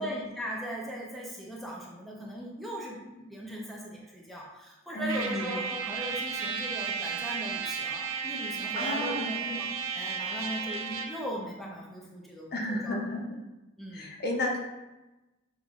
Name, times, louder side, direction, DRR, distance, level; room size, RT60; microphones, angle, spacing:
voice 1, 0.0-9.7 9.9-13.0 13.8-14.1, equal, ahead, -4 dB, 0.5 m, -39 dB
voice 2, 4.9-5.6 8.8-9.3 12.5-13.4 13.9-14.6, left 1 dB, 50° left, 0 dB, 0.6 m, -32 dB
Trumpet, 5.1-11.2, right 5 dB, 90° right, 0.6 m, -34 dB
6.3 x 3.0 x 2.4 m, 1.0 s
head